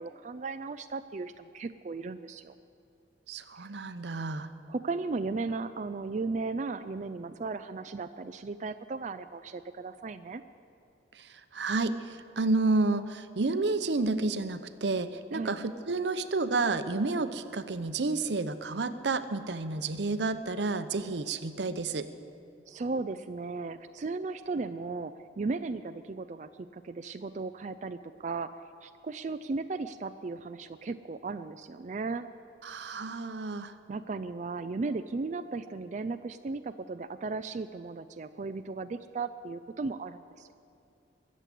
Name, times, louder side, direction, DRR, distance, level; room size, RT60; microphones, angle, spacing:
voice 1, 0.0-2.5 4.7-10.4 15.3-15.6 22.7-28.5 28.8-32.3 33.9-40.5, right 3 dB, 45° right, 9 dB, 0.4 m, -36 dB
voice 2, 3.3-4.5 11.1-22.1 32.6-33.7, right 3 dB, 80° right, 11 dB, 0.8 m, -30 dB
22.0 x 7.4 x 8.4 m, 2.7 s
head